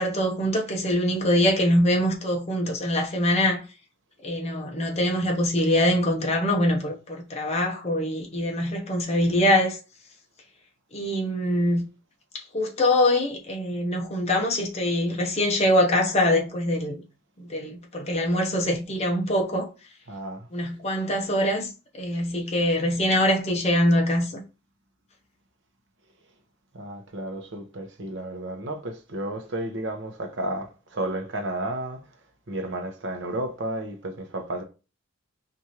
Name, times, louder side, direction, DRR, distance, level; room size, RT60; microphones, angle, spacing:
voice 1, 0.0-3.6 4.2-9.8 10.9-11.8 12.3-17.0 17.4-19.7 20.5-24.4, left 1 dB, 30° left, 0.7 m, -24 dB
voice 2, 20.1-20.5 26.7-32.0 32.5-34.6, right 1 dB, 55° right, 0.8 m, -32 dB
4.6 x 2.6 x 2.8 m
head